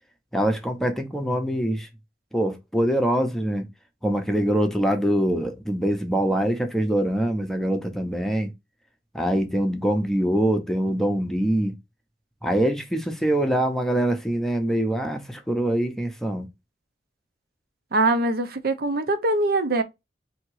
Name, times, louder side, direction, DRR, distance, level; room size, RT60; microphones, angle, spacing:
voice 1, 0.3-1.9 2.3-3.7 4.0-8.5 9.1-11.7 12.4-16.5, right 1 dB, ahead, 0.7 m, -24 dB
voice 2, 17.9-19.8, right 2 dB, 60° right, 0.7 m, -22 dB
3.5 x 2.8 x 4.7 m
head